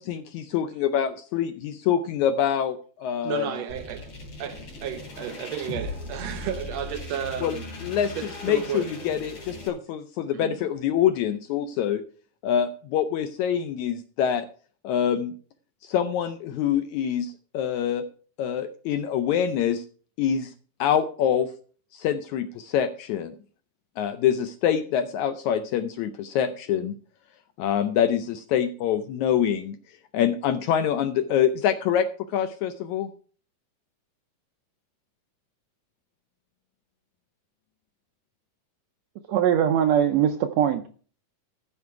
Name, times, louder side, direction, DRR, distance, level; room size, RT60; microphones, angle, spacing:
voice 1, 0.0-3.5 7.4-12.0 12.4-14.5 14.8-15.3 15.8-18.1 18.4-19.8 20.2-20.5 20.8-21.5 21.9-23.3 24.0-26.9 27.6-29.8 30.1-33.1, left 9 dB, 80° left, 1.7 m, -25 dB
voice 2, 3.2-4.1 4.4-7.7 8.2-8.9 10.3-10.6, right 8 dB, 65° right, 1.8 m, -33 dB
sound 1, 3.7-9.7, left 2 dB, 45° left, 4.0 m, -38 dB
voice 3, 39.3-40.9, right 9 dB, 85° right, 1.5 m, -21 dB
14.5 x 6.3 x 4.6 m
omnidirectional pair, 3.9 m